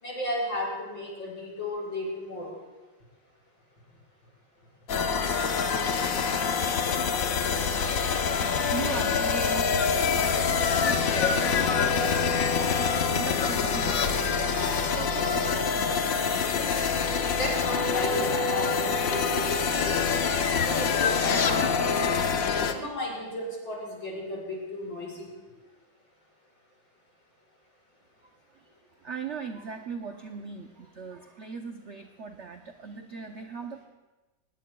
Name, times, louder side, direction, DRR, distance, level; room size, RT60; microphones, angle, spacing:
voice 1, 0.0-2.5 17.3-20.1 20.6-22.2 22.6-25.3, left 1 dB, 75° left, -5 dB, 6.2 m, -34 dB
sound 1, 4.9-22.7, left 5 dB, 55° left, 1.1 m, -25 dB
voice 2, 8.7-12.7 13.1-16.0 28.5-28.7 29.0-33.8, right 5 dB, 75° right, 5 dB, 0.6 m, -39 dB
22.5 x 20.0 x 2.3 m, 1.2 s
omnidirectional pair, 2.1 m